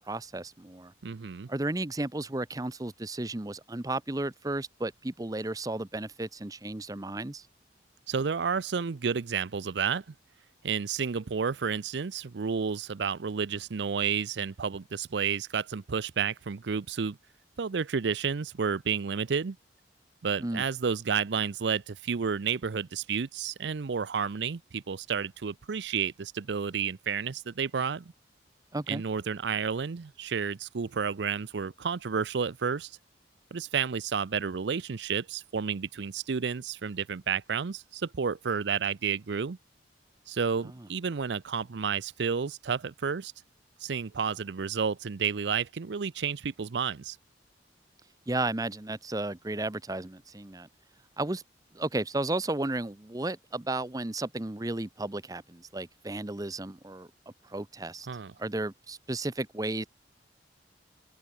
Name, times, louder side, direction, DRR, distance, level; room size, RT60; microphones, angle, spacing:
voice 1, 0.1-0.9 1.5-7.5 20.4-20.6 28.7-29.0 40.6-40.9 48.3-50.7 51.2-51.4 51.7-57.1 57.4-58.1 58.4-59.9, right 2 dB, 20° right, 0.7 m, -33 dB
voice 2, 1.0-1.5 8.1-10.0 10.6-17.2 17.6-19.6 20.2-28.1 28.9-32.9 33.5-39.6 40.3-43.3 43.8-47.2 58.1-58.3, right 6 dB, 75° right, 0.5 m, -31 dB
open air
head